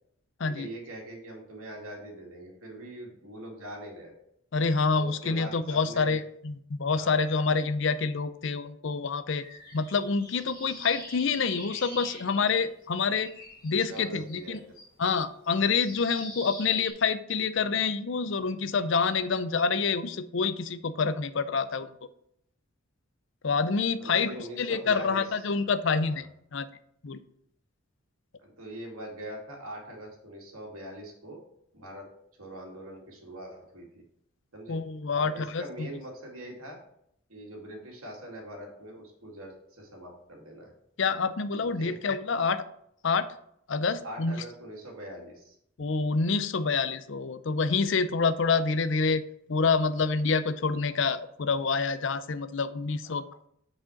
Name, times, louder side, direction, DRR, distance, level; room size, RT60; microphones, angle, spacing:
voice 1, 0.4-4.1 4.9-6.2 6.9-7.2 13.9-14.6 24.0-25.2 25.9-26.3 28.4-31.4 31.7-32.1 32.4-34.0 34.5-34.8 35.1-36.8 37.3-40.7 41.6-42.0 44.0-45.5 53.0-53.2, right 1 dB, 90° right, -1 dB, 2.3 m, -42 dB
voice 2, 4.5-9.4 9.7-13.3 13.6-14.6 15.0-21.9 23.4-24.3 24.6-26.7 27.0-27.2 34.7-35.9 41.0-42.6 43.0-43.3 43.7-44.4 45.8-49.2 49.5-53.2, left 4 dB, 60° left, 13 dB, 0.5 m, -27 dB
sound 1, 9.4-12.8 13.1-16.9, left 2 dB, 20° left, 1.9 m, -44 dB
6.3 x 4.9 x 5.8 m, 0.72 s
head